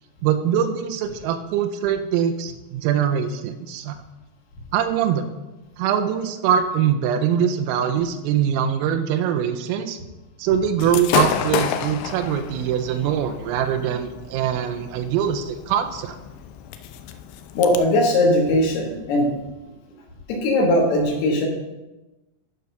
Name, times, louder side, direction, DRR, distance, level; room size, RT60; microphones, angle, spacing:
voice 1, 0.2-4.0 4.7-5.3 5.8-10.0 10.4-16.2, right 9 dB, 85° right, 8 dB, 3.3 m, -23 dB
Gunshot gunfire / Fireworks, 10.8-17.8, left 9 dB, 85° left, 2.7 m, -30 dB
voice 2, 17.5-19.3 20.3-21.5, left 1 dB, 65° left, 1 dB, 2.9 m, -19 dB
11.5 x 4.8 x 5.7 m, 1.0 s
omnidirectional pair, 5.9 m